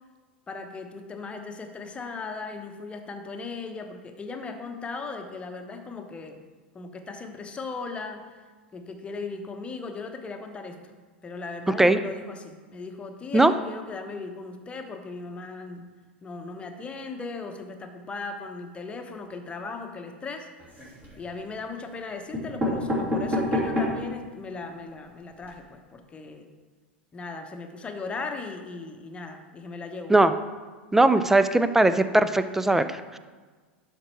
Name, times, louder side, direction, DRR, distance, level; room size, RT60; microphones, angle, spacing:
voice 1, 0.5-6.4 6.7-8.4 8.7-10.8 11.2-15.8 16.2-20.5 21.2-26.5 27.1-30.1, left 4 dB, 20° left, 5 dB, 1.0 m, -37 dB
sound 1, 20.6-21.2 21.9-22.0 22.3-24.1 24.6-24.7 24.9-25.0 25.3-25.5, left 1 dB, 25° right, 3.0 m, -28 dB
voice 2, 30.9-33.2, right 2 dB, 5° right, 11 dB, 0.4 m, -19 dB
12.0 x 5.2 x 4.5 m, 1.4 s
figure-of-eight pair, 90°, 6 cm